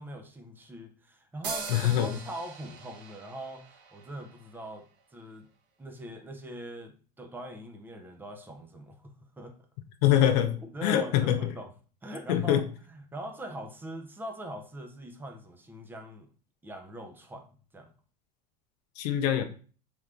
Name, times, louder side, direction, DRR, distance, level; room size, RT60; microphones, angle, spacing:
voice 1, 0.0-4.9 5.1-5.5 5.8-9.6 10.6-11.7 12.0-16.3 16.6-17.5 17.7-17.9, right 1 dB, 10° right, 0.6 m, -42 dB
sound 1, 1.4-5.0, right 5 dB, 85° right, 0.9 m, -42 dB
voice 2, 1.7-2.2 10.0-11.5 12.3-12.6 19.0-19.4, left 11 dB, 70° left, 0.5 m, -24 dB
3.4 x 3.1 x 2.5 m
supercardioid pair, 120°, 21 cm